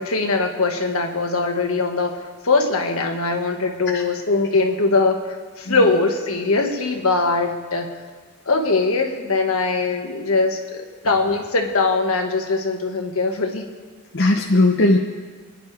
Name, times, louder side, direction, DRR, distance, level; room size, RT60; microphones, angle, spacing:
voice 1, 0.0-2.1 2.4-7.9 8.4-13.6, left 3 dB, 70° left, 2 dB, 1.7 m, -21 dB
voice 2, 14.1-15.0, left 2 dB, 50° left, 1 dB, 0.9 m, -18 dB
28.0 x 10.5 x 3.4 m, 1.5 s
head